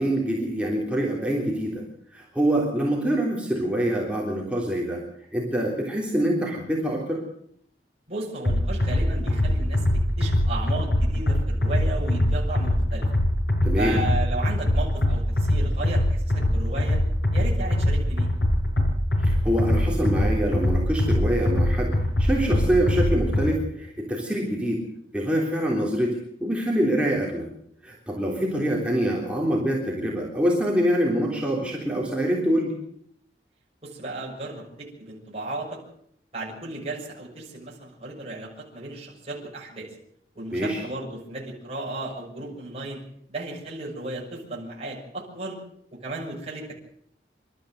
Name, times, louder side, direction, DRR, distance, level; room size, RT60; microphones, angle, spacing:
voice 1, 0.0-1.8 2.1-5.0 5.3-7.2 13.6-14.0 19.2-21.9 22.2-24.8 25.1-27.5 27.8-32.7 40.5-40.8, equal, 5° right, -3 dB, 3.4 m, -25 dB
voice 2, 8.1-9.8 10.2-13.1 13.8-17.0 17.3-18.3 33.8-35.8 36.3-39.9 40.3-43.0 43.3-45.6 45.9-46.7, right 2 dB, 35° right, -4 dB, 6.7 m, -34 dB
sound 1, 8.4-23.5, left 1 dB, 70° left, 5.7 m, -23 dB
27.0 x 13.0 x 7.9 m, 0.71 s
head